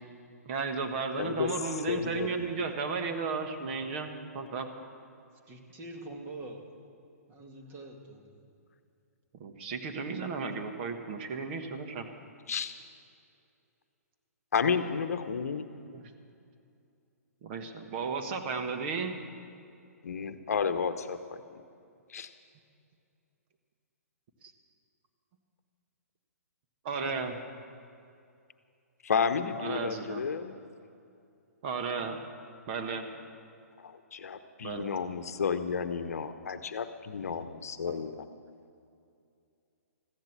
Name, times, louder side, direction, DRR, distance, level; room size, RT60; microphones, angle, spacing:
voice 1, 0.4-4.7 9.4-12.1 15.9-16.0 17.4-19.1 26.8-27.4 29.6-30.2 31.6-32.2 32.7-33.1 34.6-34.9 37.9-38.0, right 4 dB, 40° right, 5 dB, 1.5 m, -34 dB
voice 2, 1.2-1.5 1.9-2.5 12.5-12.7 14.5-15.6 20.0-21.6 22.1-22.3 29.0-30.6 33.8-38.2, left 6 dB, 65° left, 10 dB, 0.9 m, -32 dB
voice 3, 5.5-6.7 7.3-8.4 14.7-14.9, right 2 dB, 25° right, 2 dB, 2.1 m, -45 dB
14.5 x 12.0 x 7.3 m, 2.5 s
hypercardioid pair, 130°, 9 cm